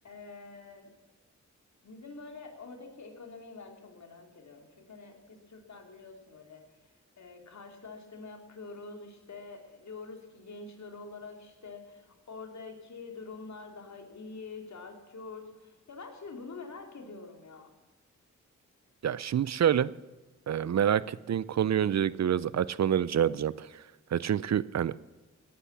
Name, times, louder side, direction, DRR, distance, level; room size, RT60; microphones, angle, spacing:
voice 1, 0.0-0.9 1.8-6.7 7.2-17.7, left 4 dB, 65° left, 3 dB, 2.9 m, -46 dB
voice 2, 19.0-19.9 20.5-23.7 24.1-24.9, right 9 dB, 65° right, 19 dB, 0.5 m, -27 dB
17.0 x 10.5 x 7.3 m, 1.2 s
cardioid pair, 60°, 30 cm